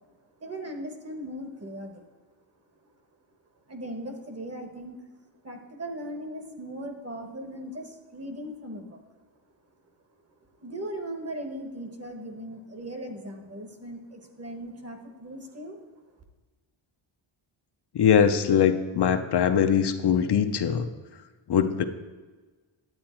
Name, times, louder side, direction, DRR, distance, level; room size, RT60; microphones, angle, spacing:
voice 1, 0.4-2.0 3.7-5.0 5.4-9.0 10.5-15.8, right 1 dB, 30° right, 5 dB, 1.1 m, -38 dB
voice 2, 17.9-20.9 21.5-21.8, left 8 dB, 55° left, 8 dB, 0.6 m, -22 dB
10.5 x 8.7 x 4.3 m, 1.3 s
wide cardioid pair, 175°, 50 cm